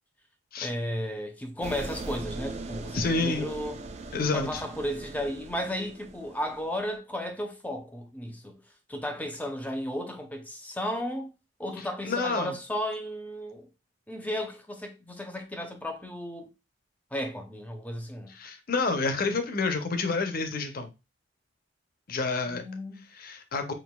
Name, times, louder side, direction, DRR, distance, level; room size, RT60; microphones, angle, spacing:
voice 1, 0.6-3.8 4.3-8.6 8.9-11.3 11.6-13.7 14.1-16.5 17.1-18.3 22.5-23.1, equal, 10° left, 0.6 m, -34 dB
sound 1, 1.6-7.0, right 2 dB, 35° right, 0.4 m, -40 dB
voice 2, 2.9-3.5 4.1-4.6 12.0-12.6 18.3-20.9 22.1-22.6 23.1-23.7, left 3 dB, 50° left, 0.6 m, -29 dB
6.0 x 2.5 x 2.2 m
head